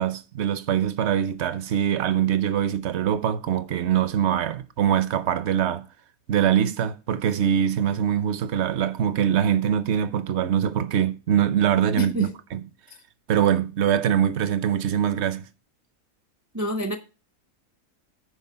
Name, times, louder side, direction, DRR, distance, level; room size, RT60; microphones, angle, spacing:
voice 1, 0.0-5.8 6.3-12.6 13.3-15.4, right 9 dB, 60° right, 0.8 m, -23 dB
voice 2, 12.0-12.3 16.5-17.0, equal, 20° right, 0.4 m, -27 dB
9.7 x 4.4 x 5.6 m
omnidirectional pair, 1.5 m